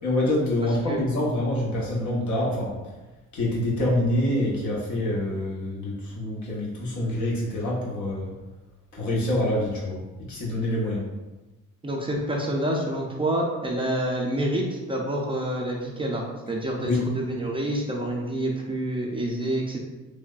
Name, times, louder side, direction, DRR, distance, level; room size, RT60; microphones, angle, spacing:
voice 1, 0.0-2.7 3.3-8.3 8.9-11.0 16.8-17.0, left 1 dB, 70° left, -4 dB, 1.0 m, -26 dB
voice 2, 11.8-19.8, right 1 dB, 20° right, -1 dB, 0.4 m, -28 dB
3.2 x 2.1 x 2.3 m, 1.1 s
cardioid pair, 90°, 30 cm